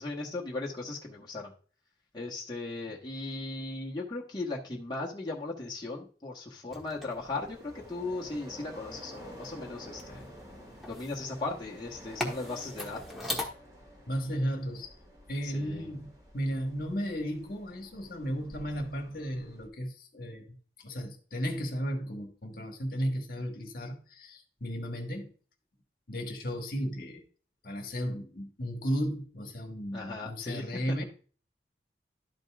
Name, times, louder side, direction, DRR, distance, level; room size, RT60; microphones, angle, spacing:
voice 1, 0.0-1.5 2.1-10.2 10.8-13.4 15.4-15.9 29.9-30.9, left 2 dB, 25° left, -4 dB, 1.2 m, -37 dB
sound 1, 6.7-13.5, left 1 dB, ahead, 1.2 m, -41 dB
sound 2, 7.1-19.7, equal, 20° right, 2.2 m, -51 dB
voice 2, 14.1-14.9 15.3-25.3 26.1-27.2 27.6-31.0, equal, 55° left, 3 dB, 1.4 m, -34 dB
12.0 x 5.3 x 2.4 m, 0.40 s
head